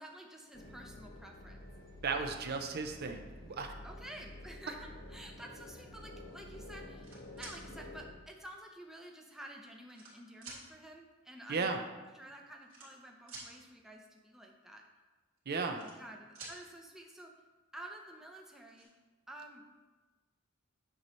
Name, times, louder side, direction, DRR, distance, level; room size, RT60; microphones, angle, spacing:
voice 1, 0.0-1.6 3.8-7.1 7.4-11.7 12.1-14.8 15.6-17.3 17.7-18.9 19.3-19.7, right 1 dB, ahead, 1 dB, 0.6 m, -50 dB
sound 1, 0.5-8.1, left 1 dB, 45° left, 0.8 m, -50 dB
voice 2, 2.0-3.7 11.5-11.8 15.5-15.8, right 4 dB, 50° right, 5 dB, 0.5 m, -35 dB
sound 2, 6.8-7.6 8.5-8.6 9.5-10.1 10.4-10.6 11.8-11.9 12.0-12.2 12.6-13.5 15.4-16.1 16.3-16.6 18.0-18.1 18.4-18.8, right 3 dB, 70° right, 2.1 m, -49 dB
7.9 x 3.1 x 5.5 m, 1.2 s
head